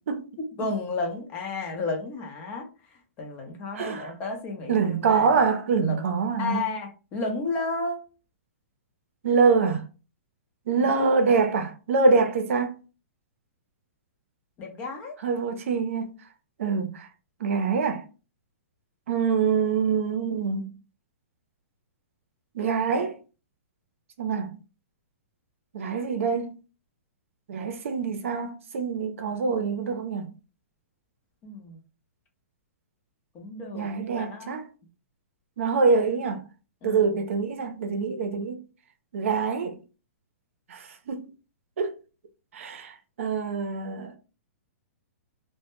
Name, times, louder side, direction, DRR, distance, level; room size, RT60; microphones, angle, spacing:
voice 1, 0.4-2.7 3.2-5.3 5.8-6.0 6.4-8.0 10.8-10.9 14.6-15.2 31.4-31.8 33.3-34.6 36.8-37.1, left 3 dB, 20° left, 0.5 m, -32 dB
voice 2, 3.7-4.1 4.7-6.6 9.2-9.8 10.7-12.8 15.2-16.1 16.6-17.1 17.4-18.0 19.1-20.7 22.5-23.1 24.2-24.5 25.7-26.6 27.5-30.3 33.7-34.6 35.6-36.4 36.8-38.6 39.1-39.8 40.7-41.3 41.8-41.9 42.5-44.2, right 5 dB, 70° right, 0.5 m, -25 dB
2.1 x 2.0 x 3.0 m
hypercardioid pair, 160°, 8 cm